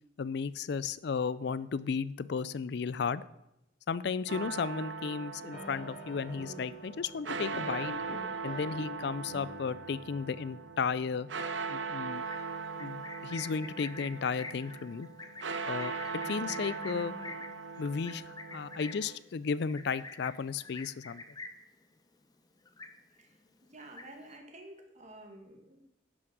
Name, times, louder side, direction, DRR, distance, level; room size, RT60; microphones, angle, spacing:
voice 1, 0.2-3.2 3.9-7.9 8.4-11.3 11.7-12.2 12.8-15.1 15.7-15.9 16.3-17.2 17.8-21.2, left 5 dB, 65° left, 17 dB, 0.4 m, -34 dB
sound 1, 4.3-19.2, right 5 dB, 90° right, 0.8 m, -40 dB
sound 2, 5.5-10.8, left 2 dB, 45° left, 2.2 m, -46 dB
Livestock farm animals working animals, 12.1-21.7 22.1-22.4 22.6-23.3 23.7-24.4, left 3 dB, 20° left, 0.8 m, -46 dB
voice 2, 23.7-25.8, right 1 dB, 40° right, 3 dB, 1.8 m, -50 dB
11.0 x 6.2 x 6.0 m, 0.86 s
head